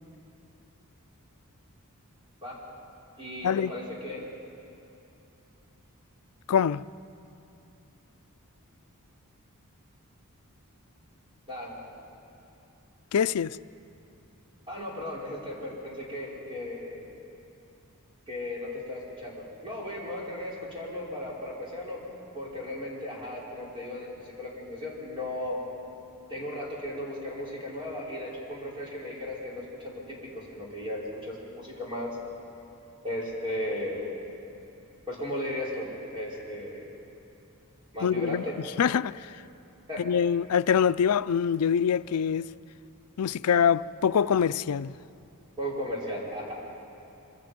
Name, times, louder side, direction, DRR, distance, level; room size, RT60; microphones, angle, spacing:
voice 1, 3.2-4.2 11.5-11.8 14.7-17.0 18.3-22.0 22.3-25.6 26.3-32.2 33.0-34.1 35.1-36.9 37.9-38.5 39.9-40.0 45.6-46.6, left 1 dB, 25° right, 5.2 m, -36 dB
voice 2, 6.5-6.8 13.1-13.6 38.0-38.4 38.8-39.3 40.0-42.5 43.2-44.9, left 7 dB, 80° left, 0.4 m, -24 dB
25.5 x 25.0 x 5.2 m
head